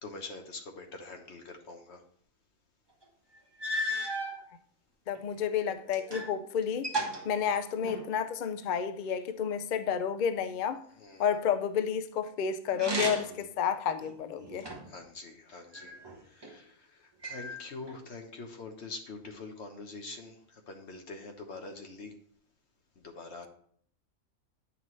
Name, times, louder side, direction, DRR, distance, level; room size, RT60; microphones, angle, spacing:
voice 1, 0.0-2.0 11.0-11.3 14.8-16.0 16.2-22.1 23.0-23.5, left 3 dB, 55° left, 1.3 m, -45 dB
sound 1, 3.0-3.1 3.6-4.4 5.1-6.4 6.6-8.2 12.7-13.5 14.0-15.0 15.7-16.5 17.2-18.0, right 1 dB, 20° right, 1.0 m, -35 dB
voice 2, 5.1-6.9 7.2-10.8 11.2-14.7, left 7 dB, 75° left, 0.4 m, -31 dB
9.0 x 5.8 x 3.1 m
omnidirectional pair, 1.4 m